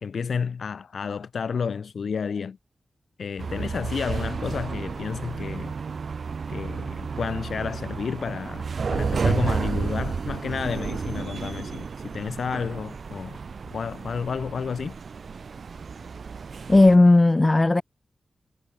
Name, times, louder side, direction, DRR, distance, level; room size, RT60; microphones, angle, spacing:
voice 1, 0.0-2.6 3.2-5.7 6.5-13.4 13.7-15.0, left 6 dB, 75° left, 2.3 m, -31 dB
sound 1, 3.4-17.0, right 5 dB, 65° right, 3.2 m, -31 dB
voice 2, 16.7-17.8, left 2 dB, 25° left, 0.7 m, -15 dB
cardioid pair, 65°, 0 cm